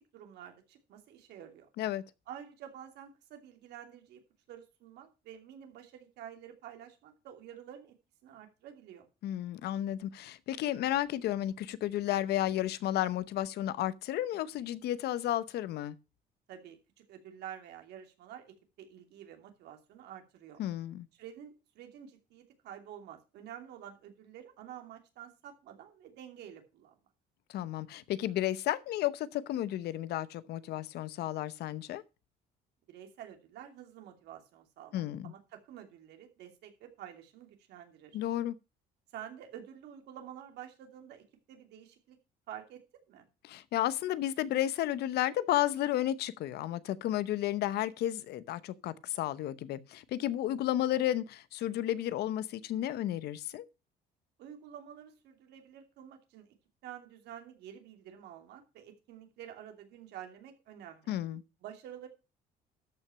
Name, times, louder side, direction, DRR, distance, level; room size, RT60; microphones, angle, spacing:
voice 1, 0.0-1.7 2.3-4.2 4.5-7.9 8.2-9.1 16.5-20.6 21.1-26.9 32.9-38.2 39.1-42.2 42.5-42.8 43.1-43.3 54.4-56.5 56.8-61.1 61.6-62.1, right 10 dB, 80° right, 2.8 m, -49 dB
voice 2, 9.2-16.0 20.6-21.1 27.5-32.0 34.9-35.3 38.1-38.5 43.4-53.7 61.1-61.4, left 13 dB, 75° left, 0.9 m, -32 dB
13.0 x 6.0 x 5.7 m
cardioid pair, 110°, 17 cm